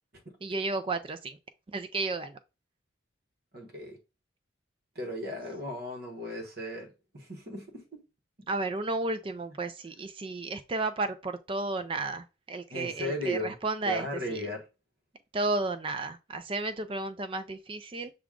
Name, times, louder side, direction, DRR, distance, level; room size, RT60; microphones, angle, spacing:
voice 1, 0.4-1.4 1.7-2.4 8.5-14.4 15.3-18.1, right 3 dB, 25° right, 0.3 m, -33 dB
voice 2, 3.5-4.0 4.9-8.0 12.7-13.6 13.8-14.6, left 1 dB, 50° right, 1.1 m, -36 dB
6.1 x 2.3 x 3.6 m
head